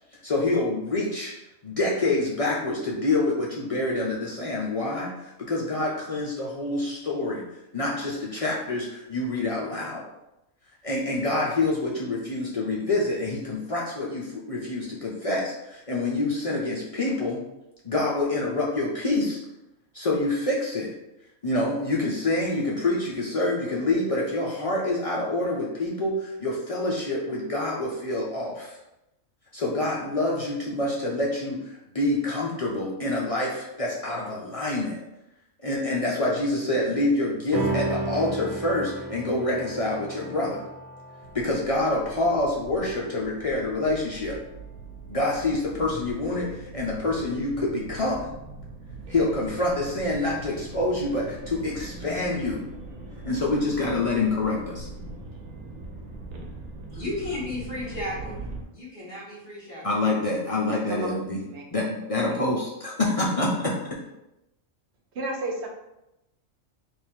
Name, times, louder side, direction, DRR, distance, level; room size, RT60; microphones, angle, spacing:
voice 1, 0.2-1.3 1.6-7.4 7.7-10.0 10.8-17.4 17.8-19.4 19.9-20.9 21.4-28.8 29.5-35.0 35.6-40.6 41.3-44.4 45.1-48.3 49.1-52.6 53.2-54.9 59.8-61.4 61.7-64.0, left 2 dB, 60° left, -4 dB, 0.3 m, -27 dB
sound 1, 37.5-44.3, right 3 dB, 35° right, 1.0 m, -34 dB
sound 2, 41.2-58.6, right 2 dB, 80° right, 1.1 m, -41 dB
voice 2, 56.9-60.0, left 1 dB, 40° left, -8 dB, 1.6 m, -34 dB
voice 3, 65.1-65.7, right 2 dB, 60° right, 0 dB, 0.9 m, -32 dB
3.4 x 2.4 x 4.3 m, 0.90 s
omnidirectional pair, 1.4 m